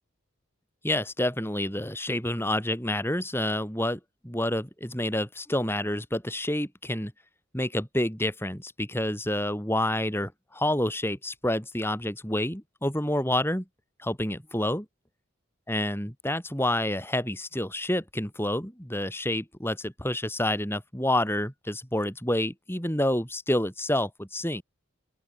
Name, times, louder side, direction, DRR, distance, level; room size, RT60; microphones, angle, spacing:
voice 1, 0.8-7.1 7.5-13.6 14.0-14.9 15.7-24.6, left 1 dB, 10° left, 7.7 m, -28 dB
open air
head